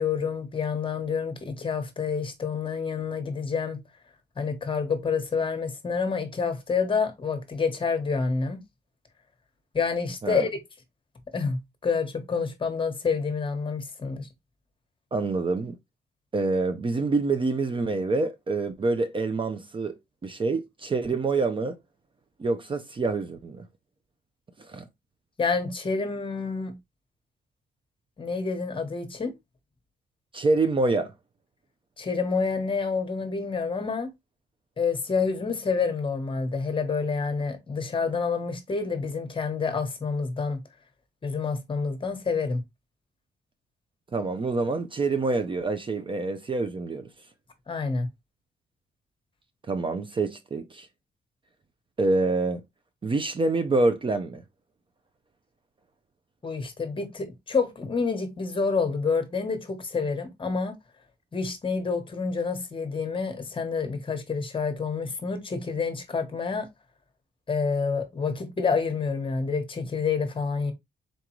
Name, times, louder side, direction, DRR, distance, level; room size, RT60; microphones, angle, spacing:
voice 1, 0.0-3.8 4.4-8.6 9.7-10.5 11.3-14.3 25.4-26.7 28.2-29.3 32.0-34.1 34.8-40.6 41.2-42.6 47.7-48.1 56.4-60.8 61.3-66.7 67.5-70.7, left 5 dB, 30° left, 1.1 m, -28 dB
voice 2, 15.1-15.7 16.3-19.9 20.2-21.8 22.4-23.6 24.7-24.9 30.3-31.1 44.1-47.1 49.7-50.9 52.0-52.6 53.0-54.4, right 3 dB, 30° right, 0.5 m, -26 dB
3.9 x 3.7 x 2.9 m
cardioid pair, 105°, 17 cm